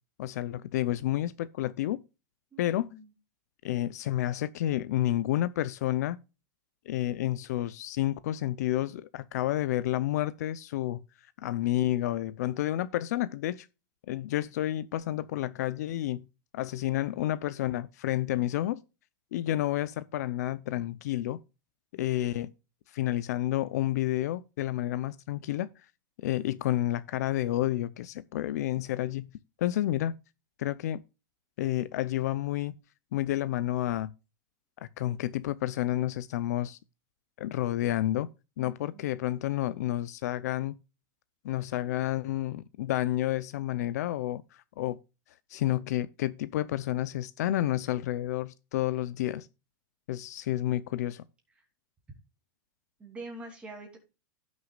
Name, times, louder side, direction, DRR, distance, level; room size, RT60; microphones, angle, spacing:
voice 1, 0.2-2.0 2.6-2.9 3.6-6.2 6.9-11.0 11.4-13.7 14.1-16.3 16.5-18.8 19.3-21.4 21.9-22.5 22.9-25.7 26.2-29.3 29.6-30.1 30.6-31.0 31.6-32.8 33.1-34.1 34.8-36.8 37.4-38.3 38.6-40.7 41.4-45.0 45.5-49.5 50.1-51.2, left 14 dB, 55° left, 0.6 m, -30 dB
voice 2, 2.5-3.1 38.6-39.0 53.0-54.0, right 2 dB, 10° right, 2.9 m, -45 dB
16.0 x 6.4 x 2.4 m
supercardioid pair, 170°, 10 cm